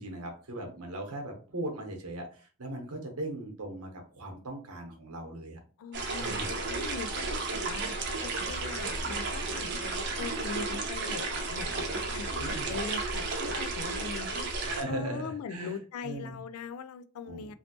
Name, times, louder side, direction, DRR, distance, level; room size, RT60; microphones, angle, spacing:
voice 1, 0.0-5.6 6.2-6.5 12.4-12.7 14.6-15.8 16.0-16.4 17.2-17.5, right 1 dB, 80° right, 2 dB, 1.0 m, -39 dB
voice 2, 5.8-7.9 8.2-14.5 14.9-17.5, left 5 dB, 75° left, 12 dB, 0.3 m, -41 dB
sound 1, 5.9-14.8, right 3 dB, 50° right, 0.6 m, -33 dB
3.1 x 2.7 x 2.9 m, 0.39 s
head